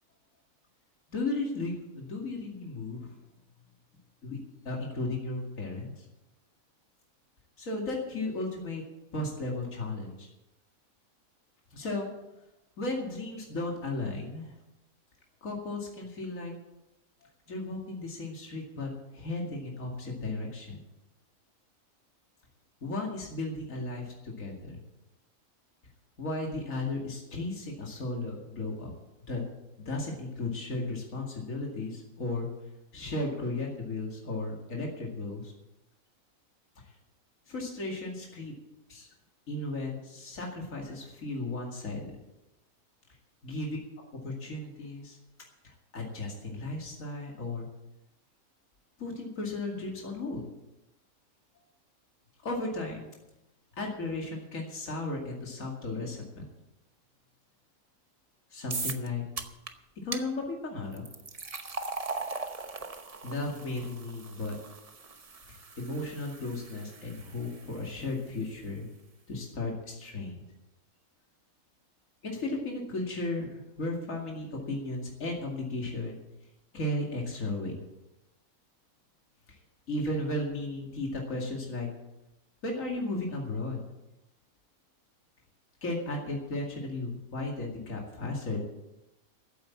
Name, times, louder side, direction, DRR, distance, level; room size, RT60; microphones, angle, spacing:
voice 1, 1.1-3.1 4.2-4.4 4.6-6.1 7.6-8.8 9.1-10.3 11.7-12.1 12.8-14.6 15.4-16.5 17.2-20.8 22.8-24.8 26.2-28.9 29.3-29.4 29.8-32.5 32.9-35.5 37.5-38.5 38.9-39.1 39.5-42.1 43.4-43.8 44.2-45.2 45.6-47.7 49.0-50.4 52.4-53.1 53.8-56.5 58.5-59.2 60.0-61.0 63.2-64.6 65.5-68.9 69.3-70.4 72.2-76.2 76.7-77.7 79.5-79.6 79.9-81.9 82.6-83.8 85.8-88.6, left 2 dB, 70° left, -1 dB, 2.7 m, -35 dB
sound 1, 58.7-59.1 59.4-59.7 60.1-60.2 60.9-68.1, right 4 dB, 30° right, 0.9 m, -39 dB
14.5 x 8.6 x 7.2 m, 0.92 s
omnidirectional pair, 1.4 m